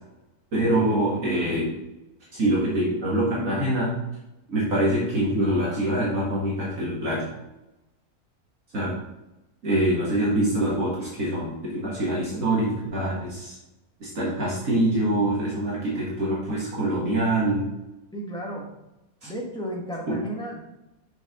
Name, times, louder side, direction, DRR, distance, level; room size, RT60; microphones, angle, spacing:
voice 1, 0.5-1.7 2.3-4.0 4.5-7.3 8.7-8.9 9.6-13.6 14.0-17.7 19.2-19.3 20.1-20.2, right 1 dB, 65° right, -6 dB, 2.1 m, -24 dB
voice 2, 18.1-18.7 19.2-20.6, equal, 5° left, -3 dB, 1.4 m, -33 dB
6.9 x 5.6 x 3.8 m, 0.95 s
omnidirectional pair, 1.6 m